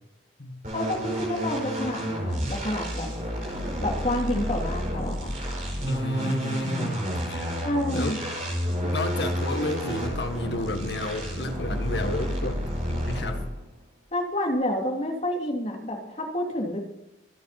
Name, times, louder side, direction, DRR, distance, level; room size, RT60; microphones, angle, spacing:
sound 1, 0.6-13.6, equal, 45° right, 4.7 m, -30 dB
voice 1, 0.7-3.1 3.8-5.3 7.6-8.2 14.1-16.8, left 1 dB, 35° left, 0 dB, 3.0 m, -29 dB
voice 2, 5.8-7.5 7.9-8.2 8.8-13.4, left 2 dB, 65° left, 6 dB, 1.7 m, -32 dB
25.0 x 8.9 x 4.3 m, 0.95 s
head